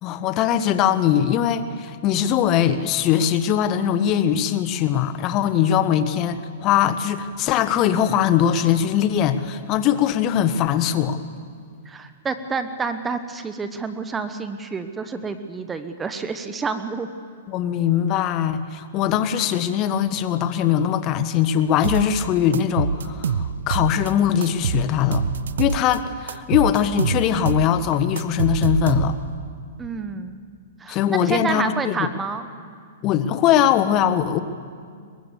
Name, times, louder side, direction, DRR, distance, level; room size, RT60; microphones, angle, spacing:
voice 1, 0.0-11.2 17.5-25.2 25.6-29.2 30.9-32.0 33.0-34.4, left 9 dB, 35° left, 10 dB, 1.3 m, -21 dB
voice 2, 11.8-17.1 29.8-30.4 30.8-32.5, right 4 dB, 15° right, 9 dB, 1.0 m, -29 dB
sound 1, 21.8-22.2 22.5-24.1 24.4-26.0 26.3-29.4, right 6 dB, 80° right, 0.8 m, -25 dB
23.0 x 20.5 x 7.2 m, 2.1 s
hypercardioid pair, 140°, 0 cm